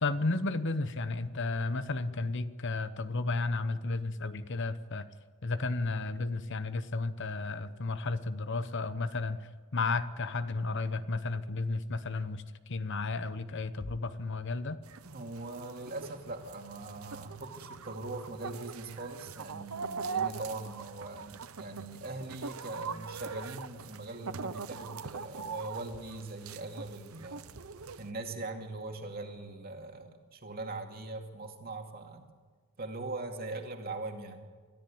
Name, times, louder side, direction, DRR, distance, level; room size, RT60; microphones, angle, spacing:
voice 1, 0.0-5.1 5.4-9.4 9.7-14.8, left 3 dB, 55° left, 12 dB, 0.9 m, -33 dB
sound 1, 14.8-28.1, right 5 dB, 75° right, 0.8 m, -42 dB
voice 2, 15.0-27.5 28.0-32.3 32.8-34.4, right 2 dB, 45° right, 3 dB, 2.4 m, -41 dB
23.0 x 14.0 x 8.7 m, 1.5 s
head